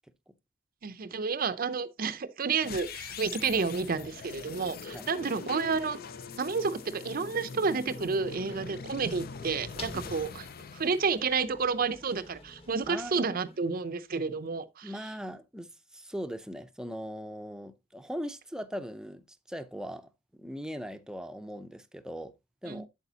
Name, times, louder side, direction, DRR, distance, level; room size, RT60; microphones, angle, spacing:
voice 1, 0.8-6.0 6.4-10.4 10.7-14.9 22.7-22.8, right 5 dB, 50° right, 0.6 m, -30 dB
sound 1, 2.6-11.8, left 5 dB, 50° left, 0.5 m, -43 dB
sound 2, 8.3-14.1, left 2 dB, 30° left, 1.3 m, -51 dB
voice 2, 12.9-13.4 14.8-22.3 22.6-22.9, equal, 5° right, 0.6 m, -40 dB
8.3 x 7.5 x 2.8 m
head